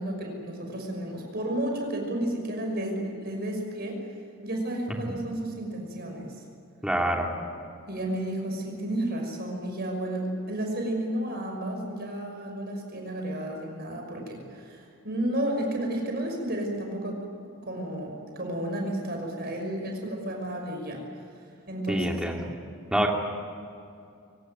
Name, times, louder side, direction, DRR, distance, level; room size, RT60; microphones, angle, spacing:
voice 1, 0.0-4.0 4.4-6.3 7.9-17.2 17.6-21.0 21.7-22.3, right 1 dB, 45° right, 2 dB, 6.1 m, -32 dB
voice 2, 6.8-7.3 21.9-22.4 22.9-23.1, right 1 dB, 5° right, 0 dB, 2.7 m, -26 dB
23.5 x 18.5 x 9.5 m, 2.5 s
head